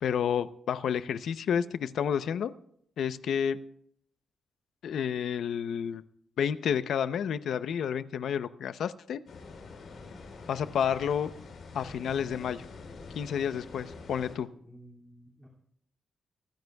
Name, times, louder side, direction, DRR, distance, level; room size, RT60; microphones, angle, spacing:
voice 1, 0.0-2.5 3.0-3.6 4.8-6.0 6.4-9.2 10.5-11.3 11.7-12.6 13.1-14.5, left 8 dB, 80° left, 13 dB, 0.6 m, -30 dB
sound 1, 9.3-14.4, left 4 dB, 60° left, 3.9 m, -46 dB
voice 2, 14.6-15.5, right 1 dB, 5° right, -3 dB, 2.5 m, -53 dB
23.5 x 14.5 x 2.3 m, 0.67 s
wide cardioid pair, 170°, 0 cm